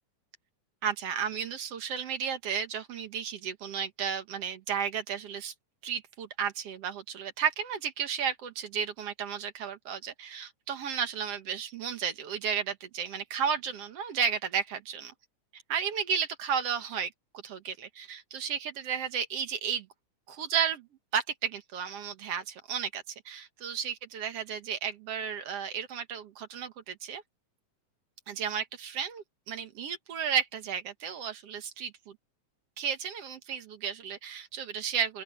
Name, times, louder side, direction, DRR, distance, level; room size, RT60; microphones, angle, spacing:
voice 1, 0.8-5.5 5.8-15.1 15.5-17.1 17.4-19.9 20.3-20.9 21.1-27.2 28.3-32.2 32.8-35.2, right 7 dB, 60° right, 2.0 m, -33 dB
open air
omnidirectional pair, 3.6 m